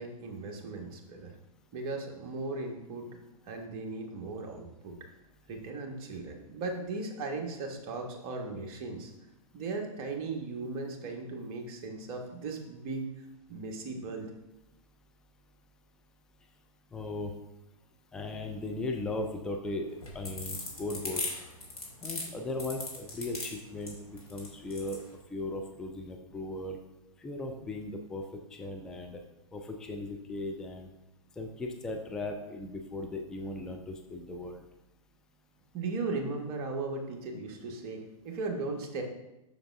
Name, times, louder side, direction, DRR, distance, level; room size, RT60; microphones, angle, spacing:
voice 1, 0.0-1.3 1.7-3.1 3.5-5.0 5.5-9.1 9.5-14.3 35.7-39.0, right 3 dB, 30° right, 2 dB, 1.1 m, -37 dB
voice 2, 16.9-17.3 18.1-21.3 22.0-25.0 25.3-26.8 27.2-29.2 29.5-30.9 31.4-34.6, left 2 dB, 5° left, 3 dB, 0.3 m, -37 dB
sound 1, 19.9-25.0, left 2 dB, 80° left, 2.1 m, -38 dB
6.9 x 6.2 x 2.5 m, 0.94 s
figure-of-eight pair, 110°, 18 cm